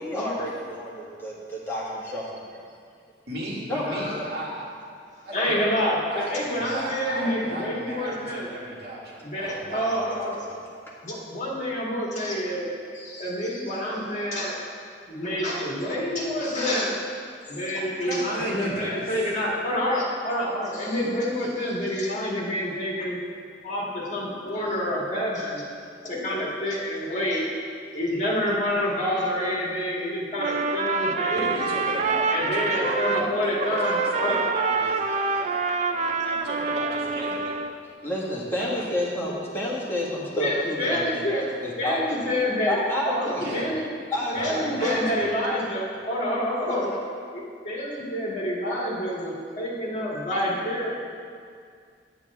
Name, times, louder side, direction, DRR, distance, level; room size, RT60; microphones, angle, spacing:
voice 1, 0.0-2.6 3.7-4.2 38.0-41.2 41.6-42.2 42.7-43.5 44.1-45.0, left 1 dB, 15° left, -7 dB, 1.7 m, -30 dB
voice 2, 3.3-4.6 5.2-5.7 6.1-10.2 10.4-10.5 18.0-19.2 31.3-35.6 35.9-37.6 38.6-38.9 43.4-43.7 44.3-45.3, right 1 dB, 65° right, -4 dB, 1.8 m, -35 dB
voice 3, 3.8-4.2 5.3-8.5 9.2-10.4 11.0-14.6 15.1-16.9 17.5-23.2 23.6-25.6 26.0-27.5 27.9-31.5 32.3-34.4 40.3-41.5 41.8-42.8 43.0-43.9 44.3-47.0 47.3-50.9, left 1 dB, 45° left, -5 dB, 1.8 m, -28 dB
Trumpet, 30.3-33.3 33.6-37.7, right 4 dB, 40° right, 0.4 m, -26 dB
9.2 x 8.6 x 3.5 m, 2.2 s
head